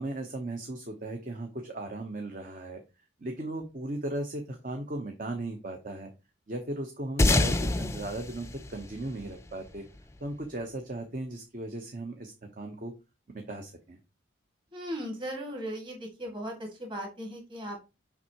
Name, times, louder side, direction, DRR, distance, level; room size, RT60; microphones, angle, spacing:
voice 1, 0.0-2.8 3.2-6.1 6.5-9.8 10.2-12.9 13.3-14.0, right 1 dB, 45° right, 4 dB, 0.9 m, -37 dB
sound 1, 7.2-10.0, left 2 dB, 15° left, 0.5 m, -27 dB
voice 2, 14.7-17.9, equal, 25° right, 1 dB, 2.2 m, -37 dB
7.2 x 5.5 x 2.9 m, 0.27 s
head